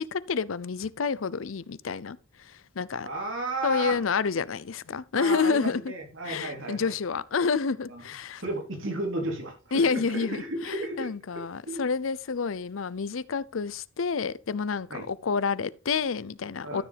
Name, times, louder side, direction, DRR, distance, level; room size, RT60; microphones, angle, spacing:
voice 1, 0.0-3.1 3.6-5.9 6.2-8.4 9.7-16.8, left 5 dB, 80° left, 0.6 m, -29 dB
voice 2, 3.0-4.0 5.1-6.9 7.9-8.0 8.4-11.1 11.4-11.8 14.9-15.1 16.6-16.8, right 1 dB, 75° right, 3.5 m, -33 dB
13.0 x 7.0 x 3.4 m
head